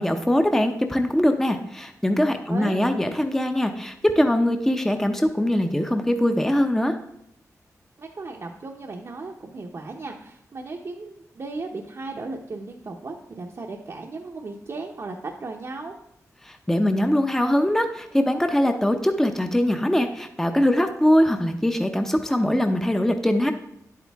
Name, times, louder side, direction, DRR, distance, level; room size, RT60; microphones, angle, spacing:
voice 1, 0.0-7.0 16.4-23.5, left 1 dB, 5° left, 6 dB, 0.7 m, -22 dB
voice 2, 2.5-2.8 8.0-15.9, right 3 dB, 55° right, 0 dB, 0.8 m, -36 dB
10.0 x 8.4 x 3.5 m, 0.79 s
wide cardioid pair, 85°, 6 cm